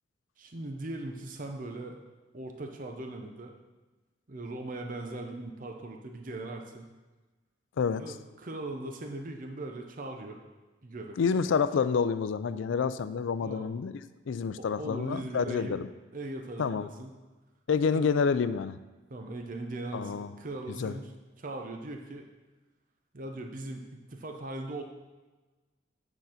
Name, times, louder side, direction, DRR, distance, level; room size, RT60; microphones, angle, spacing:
voice 1, 0.4-2.0 2.3-3.5 4.3-6.9 8.0-10.4 10.8-11.2 13.4-13.7 14.6-15.8 16.1-17.1 17.9-18.1 19.1-21.1 21.4-22.3 23.1-24.8, right 2 dB, 45° right, 3 dB, 0.7 m, -39 dB
voice 2, 7.8-8.1 11.2-13.9 14.3-15.9 16.6-16.9 17.7-18.8 19.9-20.3 20.8-20.9, left 5 dB, 85° left, 14 dB, 0.4 m, -28 dB
9.1 x 4.0 x 5.7 m, 1.2 s
head